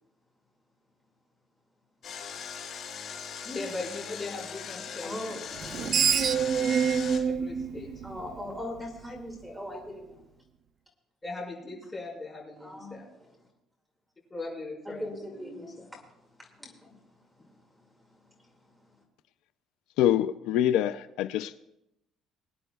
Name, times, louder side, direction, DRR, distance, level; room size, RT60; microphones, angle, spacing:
Engine, 2.0-7.2, left 7 dB, 50° left, 2.9 m, -40 dB
voice 1, 3.4-5.4 7.4-7.9 11.2-13.0 14.3-15.6, left 3 dB, 20° left, -5 dB, 4.4 m, -39 dB
voice 2, 5.0-6.0 8.0-10.2 12.6-13.3 14.8-19.0, left 1 dB, 5° right, 0 dB, 2.1 m, -42 dB
Screech, 5.6-8.8, right 7 dB, 40° right, 0.5 m, -27 dB
voice 3, 20.0-21.6, left 11 dB, 80° left, 11 dB, 0.4 m, -25 dB
22.5 x 11.0 x 2.3 m, 0.85 s
cardioid pair, 150°, 0 cm